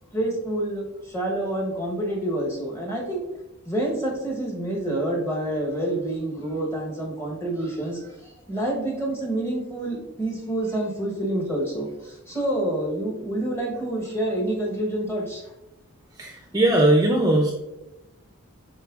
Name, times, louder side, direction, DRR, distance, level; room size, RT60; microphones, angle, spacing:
voice 1, 0.1-3.2 3.7-15.5, right 1 dB, 10° left, -2 dB, 1.0 m, -28 dB
voice 2, 16.2-17.5, right 1 dB, 15° right, 1 dB, 0.4 m, -19 dB
7.3 x 3.1 x 2.4 m, 0.96 s
head